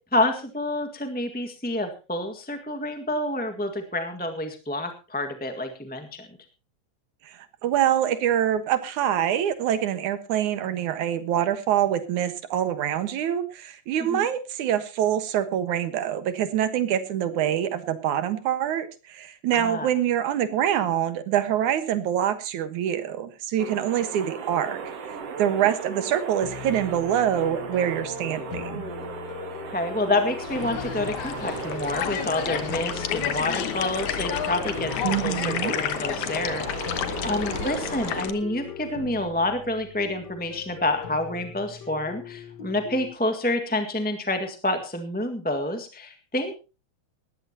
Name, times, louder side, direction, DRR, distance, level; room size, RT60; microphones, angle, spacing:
voice 1, 0.1-6.3 14.1-14.2 19.5-19.9 29.7-46.6, left 1 dB, 5° left, 6 dB, 1.0 m, -28 dB
voice 2, 7.2-28.8 35.0-35.8, right 10 dB, 90° right, 11 dB, 2.9 m, -25 dB
sound 1, 23.6-38.2, right 5 dB, 55° right, 2.8 m, -37 dB
sound 2, 26.4-43.1, left 8 dB, 50° left, 1.3 m, -40 dB
sound 3, 30.4-38.3, left 10 dB, 85° left, 2.6 m, -31 dB
19.5 x 15.0 x 2.9 m, 0.33 s
omnidirectional pair, 3.3 m